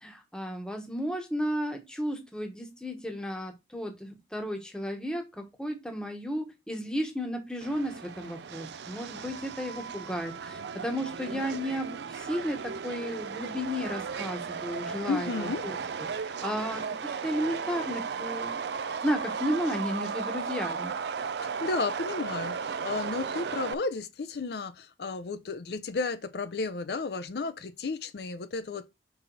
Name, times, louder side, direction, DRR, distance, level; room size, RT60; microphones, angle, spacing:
voice 1, 0.0-18.6 19.0-20.9, equal, 5° left, 1.1 m, -34 dB
Subway metro underground, 7.6-23.7, right 6 dB, 70° right, 0.4 m, -35 dB
voice 2, 15.1-15.6 21.4-28.9, left 4 dB, 65° left, 0.5 m, -33 dB
5.4 x 4.7 x 3.9 m
head